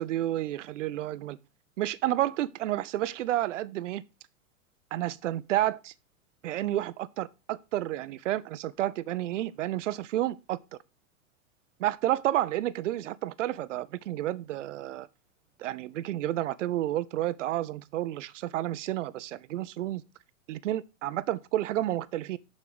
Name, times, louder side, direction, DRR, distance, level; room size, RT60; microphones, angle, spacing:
voice 1, 0.0-1.4 1.8-4.0 4.9-5.9 6.4-10.6 11.8-15.1 15.6-20.0 20.5-22.4, right 14 dB, 65° right, 0.7 m, -30 dB
7.3 x 6.5 x 4.7 m
hypercardioid pair, 95°, 40 cm